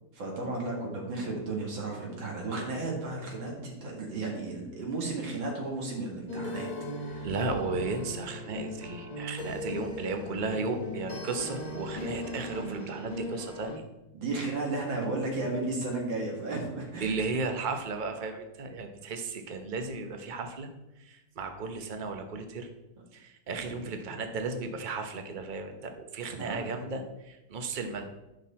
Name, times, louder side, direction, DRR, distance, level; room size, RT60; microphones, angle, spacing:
voice 1, 0.1-6.7 7.0-7.3 14.1-17.1 23.8-23.9 26.3-26.7, right 2 dB, 80° right, -1 dB, 2.5 m, -34 dB
sound 1, 6.3-13.8, left 1 dB, 30° left, 0.9 m, -38 dB
voice 2, 7.2-13.8 17.0-20.7 21.0-22.7 23.1-28.1, right 3 dB, 50° right, 5 dB, 0.6 m, -34 dB
10.5 x 5.9 x 4.2 m, 0.99 s
omnidirectional pair, 2.1 m